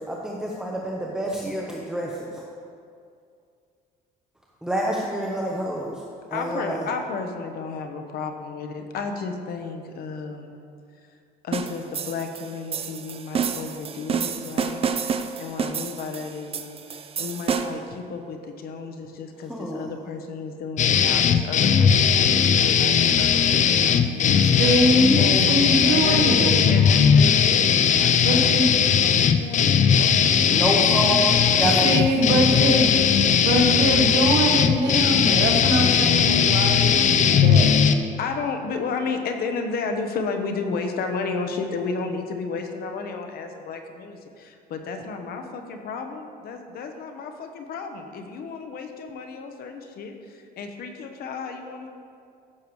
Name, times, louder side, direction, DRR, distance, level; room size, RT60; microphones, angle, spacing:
voice 1, 0.6-2.4 4.6-6.0 6.3-6.9 19.5-19.9 30.5-32.7, right 1 dB, 5° right, -3 dB, 0.9 m, -27 dB
voice 2, 6.3-10.6 11.4-24.7 25.1-25.5 25.9-26.2 26.7-30.1 38.2-51.9, left 4 dB, 65° left, 5 dB, 1.0 m, -33 dB
sound 1, 11.5-17.9, right 6 dB, 35° right, 0.5 m, -29 dB
sound 2, 20.8-37.9, left 7 dB, 45° left, 0.5 m, -18 dB
voice 3, 24.4-26.7 28.2-28.8 31.8-33.0 33.4-37.8, right 1 dB, 80° right, 2 dB, 1.4 m, -23 dB
14.5 x 6.7 x 3.2 m, 2.4 s
cardioid pair, 110°, 17 cm